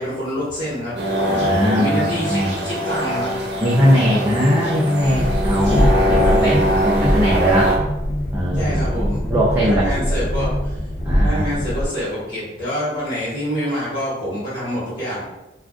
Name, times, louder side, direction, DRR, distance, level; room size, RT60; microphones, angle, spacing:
voice 1, 0.0-3.3 8.5-9.2 9.6-10.8 11.2-15.2, equal, 40° left, -10 dB, 1.2 m, -26 dB
sound 1, 1.0-7.8, equal, 60° right, 0.7 m, -22 dB
voice 2, 1.3-2.5 3.6-7.8 8.3-10.2 11.1-11.4, equal, 15° right, -6 dB, 0.4 m, -20 dB
Train, 5.0-11.9, equal, 55° left, 0.5 m, -22 dB
2.3 x 2.3 x 3.6 m, 0.98 s
head